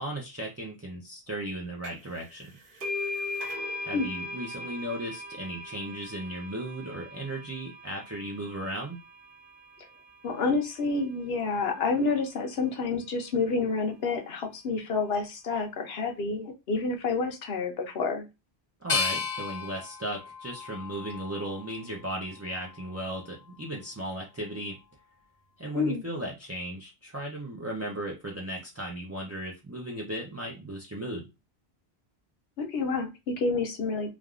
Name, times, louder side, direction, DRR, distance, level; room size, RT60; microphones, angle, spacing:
voice 1, 0.0-2.5 3.8-9.0 18.8-24.8 25.6-31.3, right 1 dB, 25° right, -2 dB, 0.3 m, -36 dB
sound 1, 1.8-2.2 2.4-9.7, left 2 dB, 55° right, 1.1 m, -38 dB
voice 2, 10.2-18.3 25.7-26.0 32.6-34.1, left 4 dB, 70° left, 4 dB, 0.9 m, -29 dB
sound 2, 18.9-21.8 22.4-23.2, left 5 dB, 45° left, 0.8 m, -34 dB
3.4 x 2.3 x 2.4 m, 0.25 s
omnidirectional pair, 1.1 m